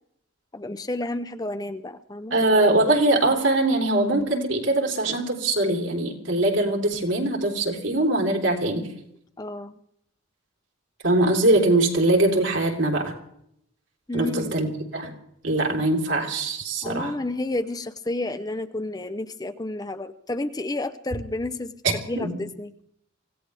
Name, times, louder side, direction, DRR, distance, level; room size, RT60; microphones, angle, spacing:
voice 1, 0.5-2.4 9.4-9.8 14.1-14.5 16.8-21.7 22.1-22.7, left 2 dB, 20° left, 9 dB, 0.7 m, -31 dB
voice 2, 2.3-8.9 11.0-13.1 14.1-14.7 14.9-15.1 15.4-17.1 21.8-22.4, right 2 dB, 65° right, 1 dB, 3.7 m, -22 dB
25.0 x 16.5 x 3.4 m, 0.74 s
head